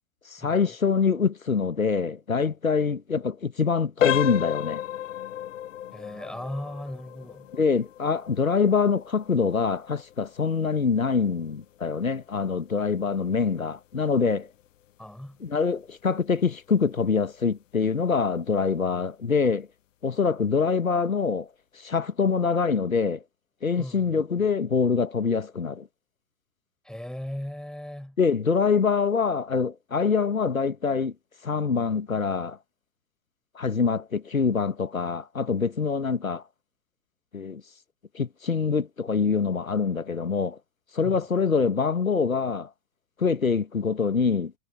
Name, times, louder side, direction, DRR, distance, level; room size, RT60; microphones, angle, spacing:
voice 1, 0.3-4.8 7.5-14.5 15.4-19.7 20.0-21.5 21.8-23.2 23.6-25.9 28.2-31.1 31.4-32.6 33.5-36.4 37.3-37.6 38.1-40.6 40.9-42.7 43.2-44.5, left 5 dB, 90° left, 1.5 m, -25 dB
sound 1, 4.0-14.7 15.0-15.3 15.8-15.9 16.4-16.6, left 11 dB, 65° left, 1.3 m, -33 dB
voice 2, 5.9-7.5 15.0-15.4 23.8-24.1 26.8-28.2 41.0-41.5, left 1 dB, ahead, 4.3 m, -38 dB
figure-of-eight pair, 90°, 40 cm